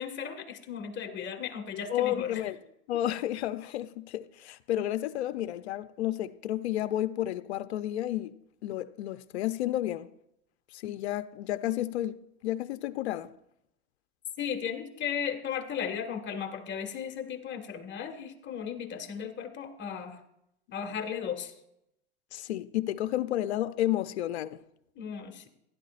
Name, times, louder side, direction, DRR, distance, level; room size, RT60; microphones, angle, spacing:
voice 1, 0.0-2.4 14.4-20.2 20.7-21.5 25.0-25.5, left 7 dB, 35° left, 1.7 m, -35 dB
voice 2, 1.9-2.6 2.9-8.3 8.6-10.1 10.7-13.3 22.3-24.6, left 13 dB, 85° left, 0.6 m, -31 dB
16.0 x 11.5 x 2.5 m
hypercardioid pair, 105°, 32 cm